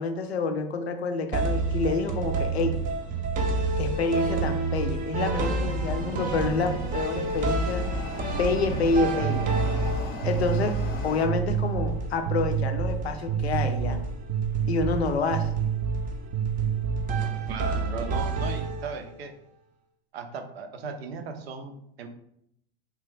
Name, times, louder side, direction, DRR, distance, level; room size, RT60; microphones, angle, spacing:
voice 1, 0.0-2.8 3.8-7.8 8.4-9.5 10.2-10.7 11.0-14.0 14.7-15.5, left 4 dB, 85° left, 7 dB, 0.5 m, -28 dB
sound 1, 1.3-19.1, right 4 dB, 25° right, 0.4 m, -28 dB
sound 2, 4.4-11.3, left 2 dB, 30° left, 0.5 m, -38 dB
voice 2, 17.5-19.3 20.1-22.1, right 5 dB, 75° right, 6 dB, 0.5 m, -37 dB
2.8 x 2.3 x 3.2 m, 0.74 s
hypercardioid pair, 90°, 31 cm